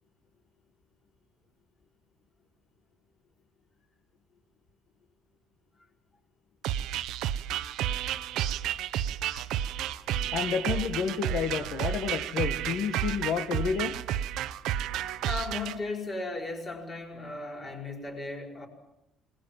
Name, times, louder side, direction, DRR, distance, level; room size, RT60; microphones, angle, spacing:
sound 1, 6.6-15.7, right 11 dB, 65° right, 0.9 m, -31 dB
voice 1, 10.3-14.0, left 7 dB, 55° left, 5 dB, 1.4 m, -30 dB
voice 2, 15.2-18.7, left 3 dB, 20° left, 2 dB, 5.1 m, -36 dB
26.0 x 20.0 x 7.6 m, 0.88 s
cardioid pair, 170°, 0 cm